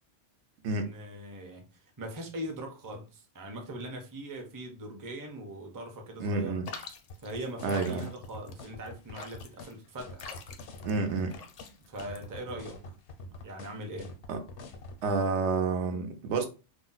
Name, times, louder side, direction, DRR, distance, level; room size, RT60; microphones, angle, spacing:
voice 1, 0.7-1.7 2.0-6.6 7.2-10.3 11.9-12.8 13.4-14.1, right 1 dB, 25° right, 0.4 m, -41 dB
voice 2, 6.2-6.7 7.6-8.0 10.8-11.4 14.3-14.4 15.0-16.5, right 4 dB, 80° right, 0.9 m, -29 dB
sound 1, 6.6-12.6, left 5 dB, 65° left, 0.4 m, -46 dB
sound 2, 7.1-15.0, left 2 dB, 85° left, 0.9 m, -45 dB
2.5 x 2.0 x 3.8 m
omnidirectional pair, 1.2 m